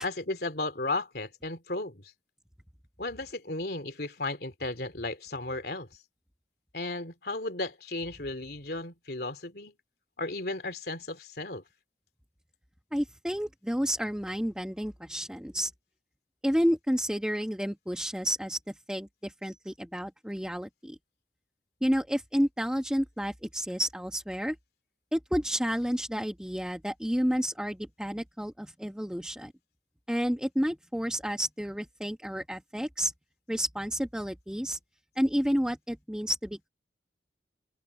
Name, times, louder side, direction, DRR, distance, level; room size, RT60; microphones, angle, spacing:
voice 1, 0.0-2.0 3.0-5.9 6.7-9.7 10.2-11.6, left 2 dB, 60° left, 3.1 m, -34 dB
voice 2, 12.9-15.7 16.4-21.0 21.8-24.6 25.1-29.5 30.1-33.1 33.5-34.8 35.2-36.7, equal, 5° right, 1.3 m, -30 dB
open air
head